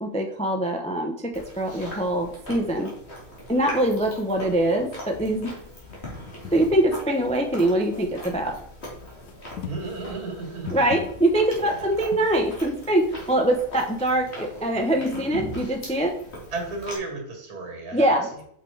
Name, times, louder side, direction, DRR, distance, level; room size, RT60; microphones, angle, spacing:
voice 1, 0.0-2.9 3.5-5.5 6.5-8.5 10.7-16.1 17.9-18.3, right 1 dB, 10° left, 3 dB, 0.4 m, -23 dB
Chewing mastication, 1.3-17.0, left 1 dB, 45° left, 2.5 m, -40 dB
sound 1, 4.3-5.5 5.8-6.7 7.2-8.5 9.0-12.6 12.9-14.1, left 8 dB, 85° left, 1.2 m, -43 dB
voice 2, 9.7-10.7 11.6-11.9 16.5-18.1, right 3 dB, 80° right, 2 dB, 2.3 m, -33 dB
5.9 x 5.5 x 4.6 m, 0.69 s
omnidirectional pair, 1.6 m